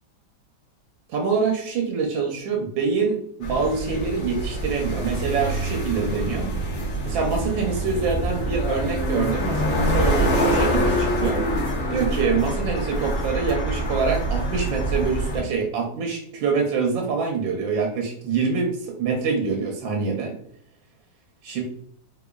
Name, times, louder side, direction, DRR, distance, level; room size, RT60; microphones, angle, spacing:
voice 1, 1.1-6.5 7.1-11.6 11.9-20.4 21.4-21.6, right 5 dB, 90° right, 2 dB, 1.3 m, -25 dB
sound 1, 3.4-15.4, right 1 dB, 50° left, 1.3 m, -25 dB
3.5 x 2.9 x 2.2 m, 0.68 s
omnidirectional pair, 2.0 m